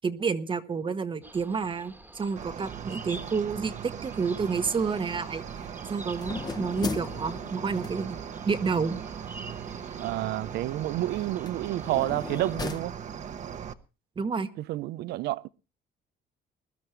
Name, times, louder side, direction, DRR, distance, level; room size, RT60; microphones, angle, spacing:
voice 1, 0.0-5.4 5.9-8.2 8.5-9.0 14.2-14.5, right 5 dB, 30° right, 1.1 m, -29 dB
sound 1, 1.2-12.6, right 1 dB, 10° right, 1.4 m, -49 dB
Cricket, 2.4-13.7, right 8 dB, 45° right, 1.0 m, -39 dB
sound 2, 4.7-13.6, left 4 dB, 25° left, 1.0 m, -41 dB
voice 2, 10.0-13.0 14.6-15.5, right 16 dB, 80° right, 0.6 m, -30 dB
21.0 x 12.5 x 3.3 m
cardioid pair, 110°, 17 cm